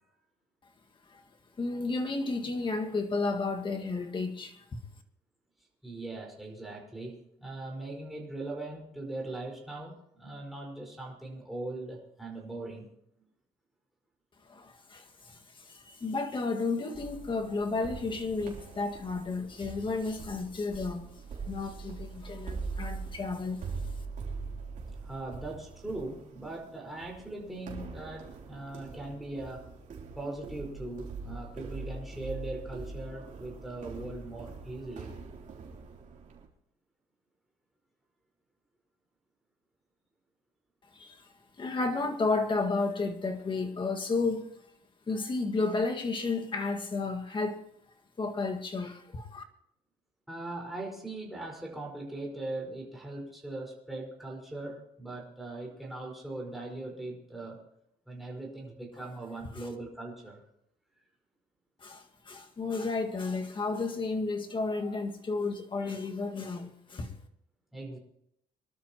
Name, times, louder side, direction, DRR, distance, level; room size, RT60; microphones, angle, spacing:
voice 1, 1.6-4.8 14.5-21.1 21.5-23.6 40.9-41.3 41.6-44.5 45.1-47.6 48.2-49.4 59.0-59.1 59.6-59.7 61.8-67.1, left 3 dB, 30° left, 1.9 m, -32 dB
voice 2, 5.8-12.9 25.0-29.6 30.1-35.1 50.3-57.6 58.1-60.4 67.7-68.0, right 2 dB, ahead, 4.9 m, -40 dB
sound 1, 16.9-36.5, right 4 dB, 50° right, 3.4 m, -42 dB
24.5 x 12.5 x 3.0 m
cardioid pair, 110°, 17 cm